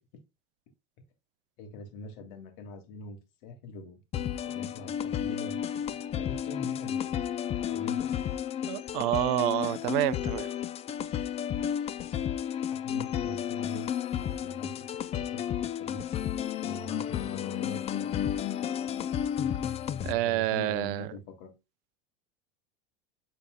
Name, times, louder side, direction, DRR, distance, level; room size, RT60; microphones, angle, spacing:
voice 1, 1.6-4.0 4.5-7.4 7.7-8.2 12.7-13.9 14.1-14.8 15.1-16.0 16.6-18.2 20.1-21.5, left 2 dB, 60° left, 2.2 m, -43 dB
sound 1, 4.1-20.1, left 9 dB, 20° left, 0.4 m, -32 dB
voice 2, 8.6-10.5 20.0-21.1, right 16 dB, 65° right, 0.6 m, -28 dB
11.5 x 4.1 x 2.2 m
supercardioid pair, 135°, 30 cm